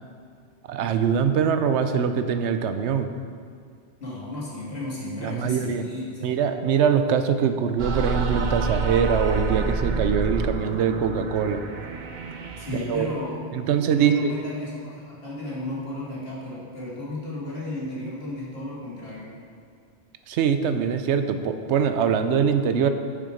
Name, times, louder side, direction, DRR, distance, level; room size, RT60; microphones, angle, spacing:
voice 1, 0.7-3.1 5.2-5.8 6.2-11.6 12.7-13.1 13.5-14.3 20.3-22.9, right 7 dB, 80° right, 8 dB, 0.9 m, -23 dB
voice 2, 4.0-6.4 12.6-13.5 13.8-19.4, left 1 dB, 60° left, -7 dB, 2.3 m, -34 dB
sound 1, 7.8-13.3, right 3 dB, 50° right, 0.7 m, -29 dB
7.3 x 6.7 x 5.0 m, 2.2 s
omnidirectional pair, 1.2 m